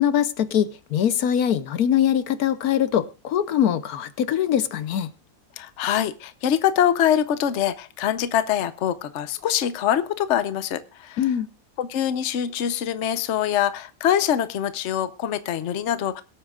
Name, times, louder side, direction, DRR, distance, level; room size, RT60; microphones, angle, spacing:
voice 1, 0.0-5.1 11.2-11.5, left 9 dB, 75° left, 1.3 m, -22 dB
voice 2, 5.6-11.2 11.8-16.2, left 10 dB, 55° left, 1.0 m, -24 dB
22.5 x 8.6 x 2.4 m
omnidirectional pair, 1.6 m